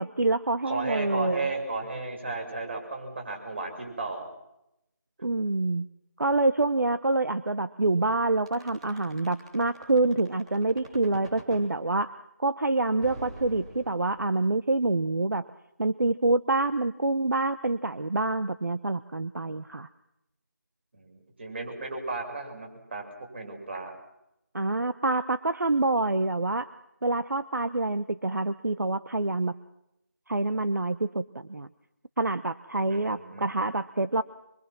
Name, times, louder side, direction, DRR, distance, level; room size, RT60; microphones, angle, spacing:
voice 1, 0.0-1.5 5.2-5.9 6.2-12.1 12.4-15.5 15.8-19.9 24.5-26.7 27.0-29.5 30.3-31.7 32.2-34.2, right 2 dB, 70° right, 12 dB, 1.0 m, -26 dB
voice 2, 0.6-4.3 20.9-23.0 23.3-23.9 32.9-33.6, right 3 dB, 35° right, 2 dB, 6.5 m, -34 dB
sound 1, 8.5-11.7 13.0-14.4, right 2 dB, 20° right, 3.4 m, -44 dB
25.5 x 23.5 x 6.1 m, 0.86 s
figure-of-eight pair, 170°, 10 cm